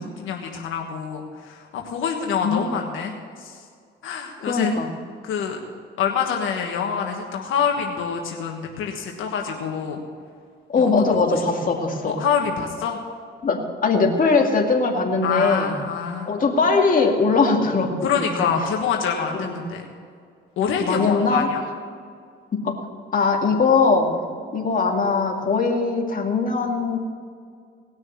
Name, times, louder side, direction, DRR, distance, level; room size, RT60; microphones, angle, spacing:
voice 1, 0.0-3.6 4.0-4.7 5.2-5.6 6.0-10.0 10.8-10.9 11.3-11.7 12.0-13.0 15.2-16.3 18.0-19.8 20.6-21.6, left 7 dB, 80° left, 2 dB, 1.5 m, -26 dB
voice 2, 2.4-2.8 4.4-4.9 10.7-12.2 13.4-15.7 16.3-18.3 19.3-19.6 20.8-21.5 22.5-22.8 23.1-24.1 24.5-27.0, left 4 dB, 45° left, 1 dB, 2.2 m, -21 dB
19.0 x 6.4 x 7.5 m, 2.1 s
cardioid pair, 90°, 20 cm